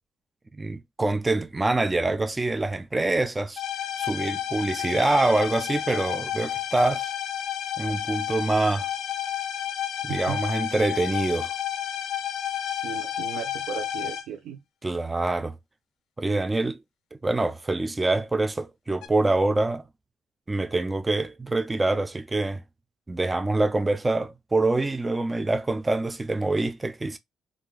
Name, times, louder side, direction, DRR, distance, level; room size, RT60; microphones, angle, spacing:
voice 1, 0.5-3.6 4.0-7.1 7.8-8.9 10.0-11.5 14.8-15.5 16.2-16.8 17.2-19.8 20.5-22.6 23.1-27.2, right 2 dB, 20° right, 0.4 m, -25 dB
sound 1, 3.6-14.2 19.0-19.1, left 10 dB, 75° left, 0.4 m, -31 dB
voice 2, 12.7-14.6, right 9 dB, 80° right, 0.6 m, -36 dB
3.5 x 2.5 x 2.3 m
cardioid pair, 90°, 0 cm